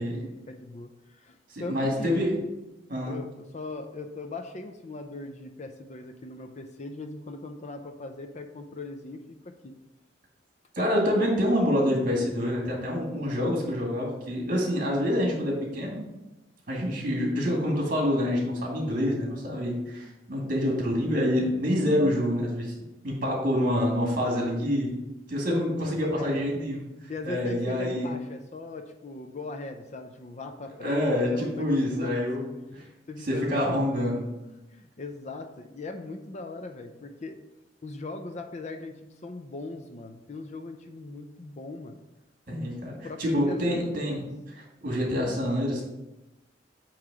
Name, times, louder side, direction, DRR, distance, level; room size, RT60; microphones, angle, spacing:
voice 1, 0.0-2.1 3.0-9.7 25.8-26.4 27.1-32.5 32.8-33.6 34.7-37.4 37.8-42.0 43.0-44.3, left 2 dB, 40° left, 6 dB, 0.5 m, -40 dB
voice 2, 1.5-2.4 2.9-3.2 10.8-16.0 16.7-22.7 23.0-24.9 25.3-26.8 27.2-28.1 30.8-32.8 33.3-34.2 42.5-44.2 44.8-45.9, equal, 50° right, -2 dB, 2.1 m, -26 dB
8.6 x 3.1 x 4.8 m, 0.99 s
head